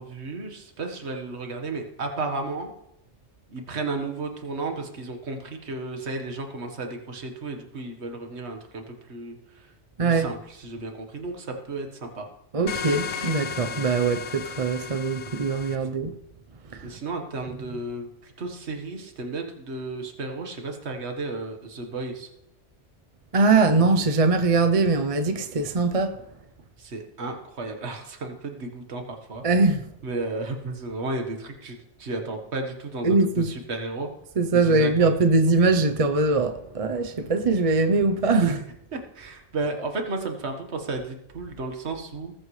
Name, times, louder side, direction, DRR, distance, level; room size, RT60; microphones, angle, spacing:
voice 1, 0.0-2.7 3.5-9.7 10.0-12.3 15.8-15.9 16.8-22.3 26.8-29.4 30.0-34.1 34.5-35.4 38.4-38.5 38.9-42.3, right 3 dB, 65° right, 1.8 m, -33 dB
voice 2, 12.5-16.1 16.7-16.9 23.3-26.2 29.4-29.8 33.0-33.5 34.4-38.6, right 3 dB, 35° right, 0.7 m, -22 dB
sound 1, 12.7-15.8, left 6 dB, 70° left, 1.0 m, -34 dB
19.5 x 8.7 x 3.2 m
omnidirectional pair, 1.2 m